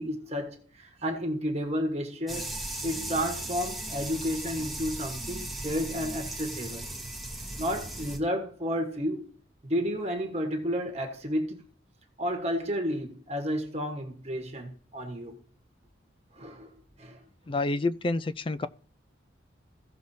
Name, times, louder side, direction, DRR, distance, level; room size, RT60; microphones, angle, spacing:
voice 1, 0.0-2.5 2.8-6.9 7.6-9.3 9.6-11.6 12.2-15.4 16.3-16.7 17.0-17.2, equal, 35° right, 1.3 m, -31 dB
sound 1, 2.3-8.2, right 1 dB, ahead, 1.0 m, -37 dB
voice 2, 17.5-18.7, left 2 dB, 25° left, 0.3 m, -28 dB
16.0 x 6.3 x 2.7 m
head